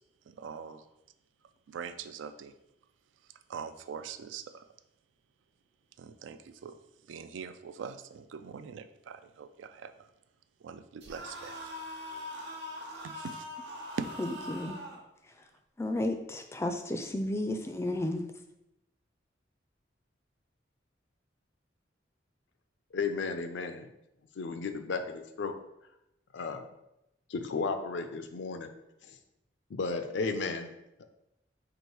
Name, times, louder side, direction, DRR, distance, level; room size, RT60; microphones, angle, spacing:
voice 1, 0.3-0.8 1.7-2.5 3.5-4.7 6.0-6.8 7.1-10.1 10.6-11.6 13.0-13.5 13.9-14.1, right 6 dB, 85° right, 11 dB, 0.3 m, -42 dB
sound 1, 11.0-15.0, left 1 dB, 65° right, 0.9 m, -42 dB
voice 2, 14.2-14.8 15.3-15.5 15.8-18.3, left 1 dB, 15° left, 6 dB, 0.3 m, -33 dB
voice 3, 22.9-23.9 24.4-25.6 26.3-26.7 27.3-28.7 29.1-29.2 29.7-30.7, left 4 dB, 75° left, 8 dB, 0.4 m, -34 dB
4.7 x 2.5 x 4.5 m, 0.87 s
head